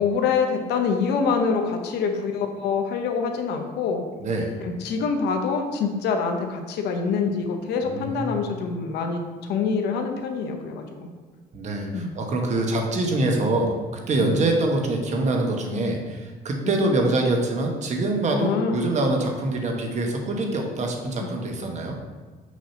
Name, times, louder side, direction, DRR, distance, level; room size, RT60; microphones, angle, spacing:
voice 1, 0.0-4.0 4.6-9.2 9.5-10.8 11.9-12.1 14.2-14.3 16.6-16.7 18.4-18.8 21.2-21.3, left 5 dB, 80° left, 4 dB, 0.8 m, -25 dB
voice 2, 4.2-4.6 7.8-8.4 11.5-13.8 14.1-22.0, right 2 dB, 45° right, 2 dB, 1.1 m, -24 dB
6.2 x 2.9 x 5.7 m, 1.4 s
cardioid pair, 110°, 17 cm